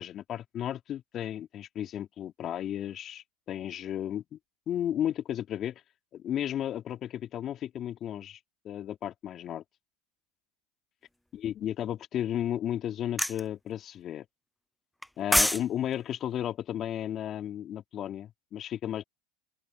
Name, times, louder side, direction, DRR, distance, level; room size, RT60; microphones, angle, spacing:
voice 1, 0.0-4.4 4.7-5.8 6.1-8.4 8.6-9.6 11.3-14.2 15.2-19.0, left 11 dB, 40° left, 2.8 m, -34 dB
sound 1, 13.2-13.4 15.0-15.6 15.9-16.1, left 1 dB, 5° left, 0.5 m, -24 dB
open air
hypercardioid pair, 95°, 0 cm